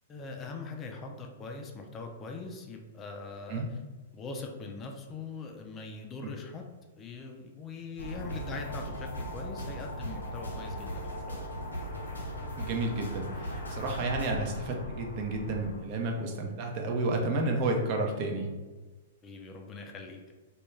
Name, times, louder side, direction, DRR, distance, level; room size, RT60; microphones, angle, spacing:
voice 1, 0.1-3.6 4.1-6.7 7.0-11.5 19.2-20.3, left 4 dB, 25° left, 2 dB, 0.3 m, -42 dB
sound 1, 8.0-15.8, equal, 90° left, 0.7 m, -38 dB
voice 2, 12.6-18.5, right 2 dB, 45° right, 1 dB, 0.5 m, -31 dB
2.2 x 2.2 x 3.1 m, 1.2 s
hypercardioid pair, 115°, 0 cm